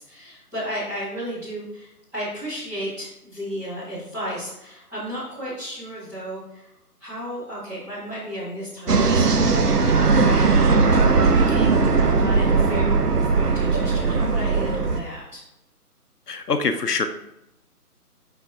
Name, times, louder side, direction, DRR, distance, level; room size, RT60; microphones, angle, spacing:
voice 1, 0.0-6.7 7.0-10.5 10.8-15.4, equal, 5° right, -12 dB, 1.4 m, -33 dB
sound 1, 8.9-15.0, right 4 dB, 75° right, 0.8 m, -19 dB
voice 2, 16.3-17.1, left 4 dB, 80° left, 9 dB, 0.7 m, -24 dB
7.9 x 5.2 x 2.5 m, 0.87 s
figure-of-eight pair, 150°, 47 cm